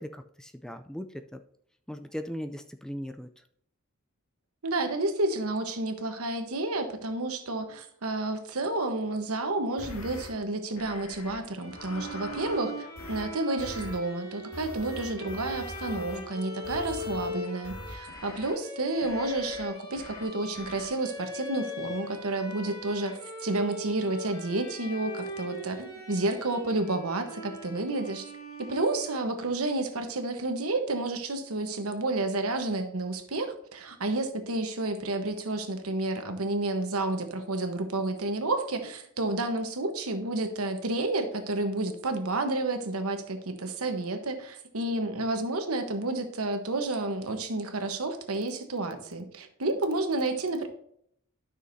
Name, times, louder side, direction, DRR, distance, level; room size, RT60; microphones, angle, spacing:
voice 1, 0.0-1.4 1.9-3.3 16.1-16.3, equal, 5° left, 8 dB, 0.3 m, -38 dB
voice 2, 4.6-28.3 28.6-50.7, right 2 dB, 75° right, 6 dB, 1.1 m, -30 dB
sound 1, 9.8-10.3 10.8-11.4 11.7-12.6 13.0-13.3 13.6-14.0 14.5-16.2 16.6-17.3 17.6-18.5 19.0-19.7 19.9-20.2 20.6-20.9, left 1 dB, 75° left, 1.9 m, -43 dB
Bowed string instrument, 11.6-29.4, left 1 dB, 20° left, 2.7 m, -40 dB
12.5 x 6.2 x 2.7 m, 0.69 s
head